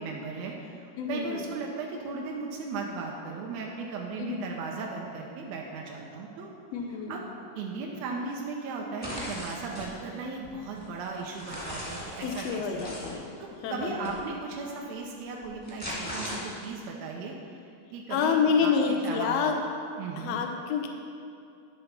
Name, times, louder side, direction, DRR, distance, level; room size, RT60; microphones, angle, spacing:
voice 1, 0.0-6.5 7.1-7.2 7.6-12.8 13.4-17.3 17.9-19.5 20.0-20.4, right 4 dB, 80° right, -1 dB, 1.6 m, -36 dB
voice 2, 1.0-1.4 4.2-4.4 6.7-7.2 12.2-14.1 18.1-19.5 20.1-20.9, left 6 dB, 85° left, 3 dB, 1.4 m, -28 dB
sound 1, 9.0-9.9 10.4-13.1 14.0-14.2 15.4-16.8, equal, 5° left, 0.7 m, -38 dB
11.0 x 3.9 x 5.8 m, 2.5 s
omnidirectional pair, 3.8 m